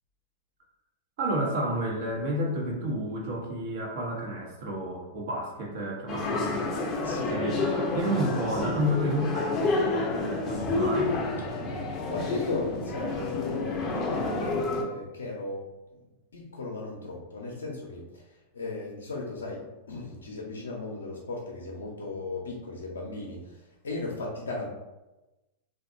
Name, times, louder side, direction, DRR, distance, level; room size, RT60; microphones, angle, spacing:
voice 1, 1.2-6.7 7.2-7.6 7.9-11.1, equal, 60° right, -1 dB, 0.8 m, -31 dB
sound 1, 6.1-14.8, left 3 dB, 30° left, 0.5 m, -29 dB
voice 2, 7.0-7.4 11.6-15.7 15.9-24.7, left 3 dB, 80° left, -2 dB, 0.5 m, -37 dB
2.7 x 2.2 x 2.5 m, 1.0 s
hypercardioid pair, 105°, 0 cm